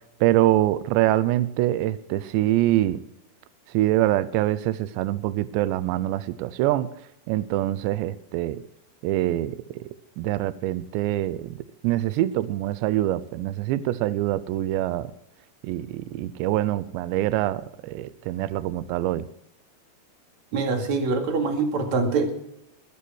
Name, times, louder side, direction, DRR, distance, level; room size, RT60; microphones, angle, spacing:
voice 1, 0.2-3.0 3.7-6.9 7.3-8.6 9.0-9.9 10.2-15.1 15.6-19.3, right 14 dB, 85° right, 15 dB, 2.9 m, -24 dB
voice 2, 20.5-22.3, right 4 dB, 45° right, 4 dB, 3.0 m, -24 dB
22.5 x 8.5 x 6.3 m, 0.79 s
omnidirectional pair, 5.0 m